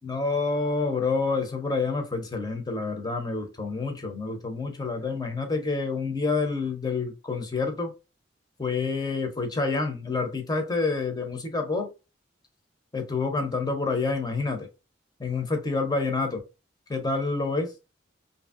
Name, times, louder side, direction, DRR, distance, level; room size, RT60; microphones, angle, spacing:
voice 1, 0.0-7.9 8.6-11.9 12.9-14.7 15.2-16.4 16.9-17.7, left 3 dB, 20° left, 0.6 m, -28 dB
2.9 x 2.6 x 2.4 m
head